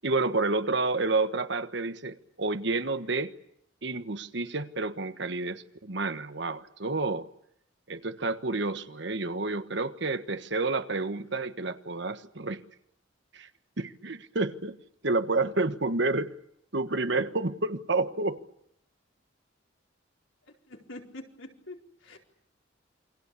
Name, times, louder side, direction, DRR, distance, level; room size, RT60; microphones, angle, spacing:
voice 1, 0.0-3.3 3.8-7.3 7.9-12.6 13.3-13.5 13.8-14.8 15.0-16.3 16.7-18.4, right 3 dB, 60° right, 1.4 m, -29 dB
voice 2, 20.5-22.2, left 2 dB, 75° left, 4.5 m, -46 dB
28.5 x 23.5 x 8.4 m
head